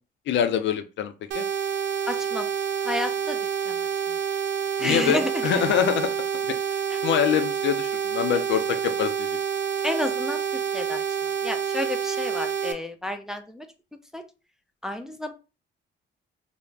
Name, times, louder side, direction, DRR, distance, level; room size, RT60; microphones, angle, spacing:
voice 1, 0.3-1.5 4.8-6.1 6.5-6.6 7.0-9.4, left 9 dB, 70° left, 10 dB, 0.4 m, -25 dB
sound 1, 1.3-12.7, right 7 dB, 65° right, 0.4 m, -28 dB
voice 2, 2.1-2.5 2.8-3.4 3.7-4.2 4.8-5.5 6.9-7.0 9.8-13.7 14.1-14.2 14.8-15.3, left 1 dB, 5° right, 6 dB, 0.4 m, -31 dB
2.3 x 2.0 x 3.2 m, 0.31 s
cardioid pair, 90°, 20 cm